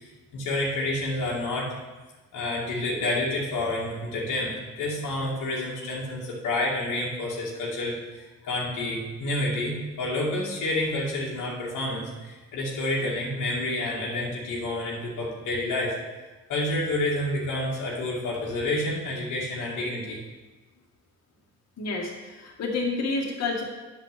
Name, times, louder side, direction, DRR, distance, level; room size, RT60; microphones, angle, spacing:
voice 1, 0.0-1.7 2.3-16.0 16.5-20.2, left 1 dB, 85° left, -5 dB, 2.5 m, -29 dB
voice 2, 21.8-23.6, left 3 dB, 60° left, -3 dB, 2.3 m, -29 dB
9.9 x 5.7 x 6.9 m, 1.2 s
cardioid pair, 90°, 30 cm